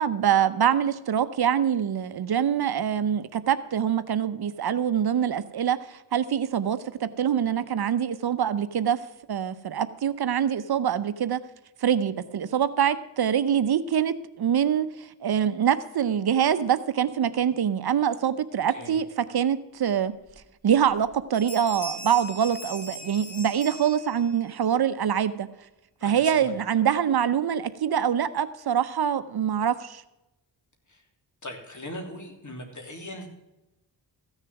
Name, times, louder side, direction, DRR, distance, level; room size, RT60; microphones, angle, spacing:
voice 1, 0.0-9.0 9.3-11.4 11.8-14.9 15.2-20.1 20.6-25.5 26.0-30.0, right 9 dB, 60° right, 13 dB, 0.8 m, -24 dB
Bell, 20.3-20.4 20.8-21.1 21.3-24.5, equal, 70° left, 3.5 m, -40 dB
voice 2, 26.0-26.5 30.9-31.0 31.4-33.3, left 1 dB, 40° left, 3 dB, 3.3 m, -39 dB
15.0 x 6.6 x 5.9 m, 0.94 s
cardioid pair, 70°, 43 cm